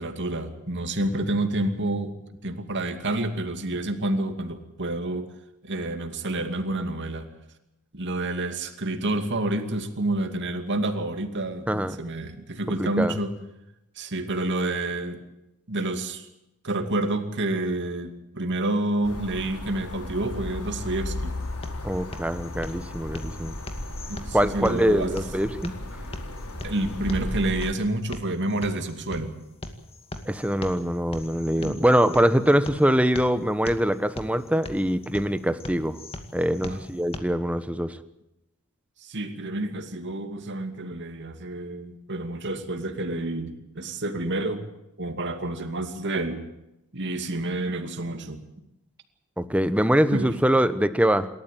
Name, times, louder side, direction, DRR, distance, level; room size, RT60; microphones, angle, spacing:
voice 1, 0.0-2.1 2.4-5.3 5.6-7.3 7.9-13.3 14.0-15.2 15.7-16.3 16.6-21.3 24.1-25.2 26.6-29.3 31.6-31.8 36.7-36.9 39.0-44.6 45.0-46.4 46.9-48.4 50.1-50.3, right 2 dB, 55° right, 7 dB, 2.5 m, -29 dB
voice 2, 12.8-13.2 21.8-23.6 24.3-25.7 30.2-36.0 36.3-38.0 49.4-51.3, equal, 5° right, 12 dB, 1.1 m, -23 dB
sound 1, 19.0-27.7, left 1 dB, 85° left, 4.2 m, -35 dB
sound 2, 21.2-37.2, left 1 dB, 25° left, 2.3 m, -41 dB
27.5 x 13.5 x 9.2 m, 0.89 s
head